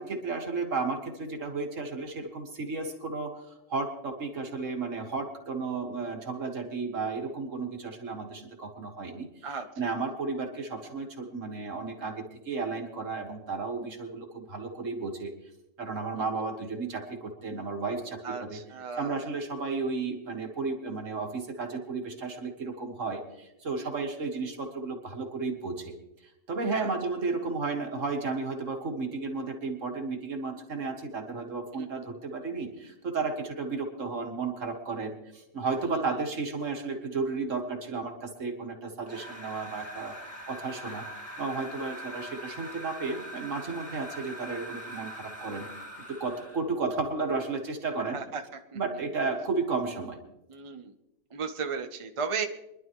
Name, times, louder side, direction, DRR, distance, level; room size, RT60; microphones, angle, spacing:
voice 1, 0.0-15.3 15.8-18.6 19.0-25.9 26.5-40.1 40.5-41.1 41.4-45.7 46.1-48.2 48.7-50.2, right 4 dB, 65° right, 3 dB, 2.2 m, -33 dB
voice 2, 18.2-19.2 23.8-23.9 26.8-26.9 31.7-31.9 35.8-36.2 48.1-48.4 48.7-48.8 50.5-50.9 51.3-52.5, right 5 dB, 30° right, 6 dB, 0.7 m, -35 dB
sound 1, 39.0-46.7, equal, 10° right, 1.9 m, -42 dB
24.0 x 11.5 x 3.1 m, 0.91 s
omnidirectional pair, 1.4 m